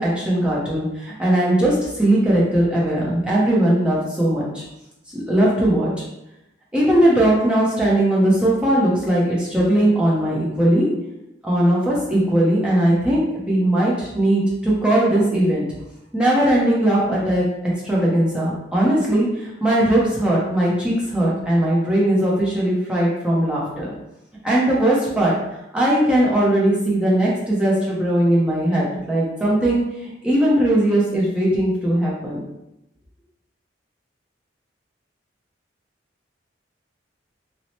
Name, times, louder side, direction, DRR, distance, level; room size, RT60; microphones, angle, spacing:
voice 1, 0.0-4.6 5.1-5.9 6.7-10.9 11.4-15.7 16.1-17.4 17.8-23.9 24.4-25.3 25.7-32.4, right 1 dB, 5° right, -6 dB, 0.6 m, -19 dB
2.8 x 2.0 x 2.9 m, 0.88 s
head